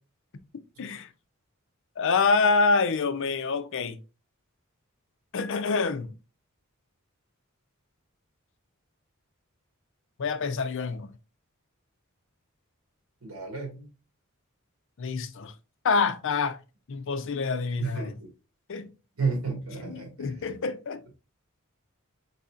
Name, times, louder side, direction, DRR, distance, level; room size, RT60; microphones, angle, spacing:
voice 1, 0.8-1.1 2.0-4.0 5.3-6.1 10.2-11.1 15.0-15.5 15.8-16.6 16.9-18.2 18.7-18.9 19.9-21.0, left 4 dB, 65° left, 0.5 m, -26 dB
voice 2, 13.2-13.9 17.8-18.3 19.2-20.4, right 4 dB, 80° right, 1.8 m, -32 dB
4.1 x 4.1 x 2.4 m
head